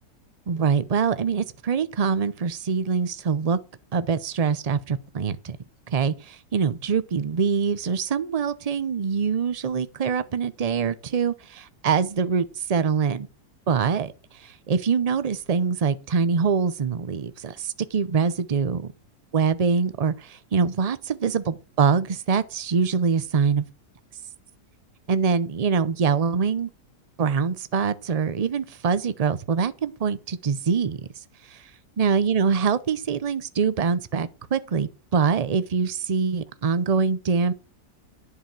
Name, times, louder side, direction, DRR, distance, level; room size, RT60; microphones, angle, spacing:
voice 1, 0.5-3.6 3.9-5.6 5.9-13.3 13.7-18.9 19.3-23.6 25.1-26.7 27.2-31.0 31.5-31.6 32.0-37.5, right 6 dB, 55° right, 0.4 m, -24 dB
11.0 x 4.9 x 7.4 m
omnidirectional pair, 1.7 m